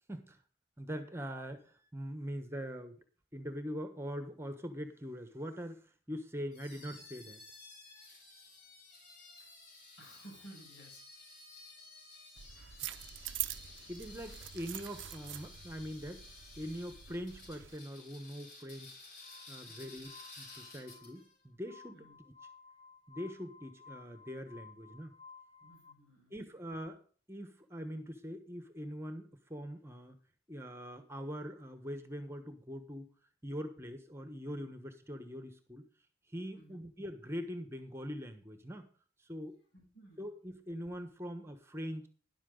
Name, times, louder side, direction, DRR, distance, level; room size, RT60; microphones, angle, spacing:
voice 1, 0.8-3.0 3.3-7.4 13.9-16.2 16.6-19.0 19.5-22.3 23.1-25.1 26.3-27.0 27.3-30.2 30.5-33.1 33.4-35.8 36.3-38.9 39.2-39.6 40.2-42.1, equal, 15° right, 8 dB, 1.2 m, -43 dB
sound 1, 6.5-21.3, left 3 dB, 55° left, 5.2 m, -54 dB
voice 2, 10.0-11.0 19.6-20.0 21.9-22.2 25.6-26.4 36.5-36.8 39.7-40.3, right 1 dB, 80° left, 0 dB, 7.0 m, -56 dB
sound 2, 12.4-17.8, right 13 dB, 70° right, 0.6 m, -44 dB
Glass, 19.2-25.9, left 5 dB, 30° left, 1.6 m, -57 dB
13.0 x 11.0 x 3.9 m, 0.42 s
head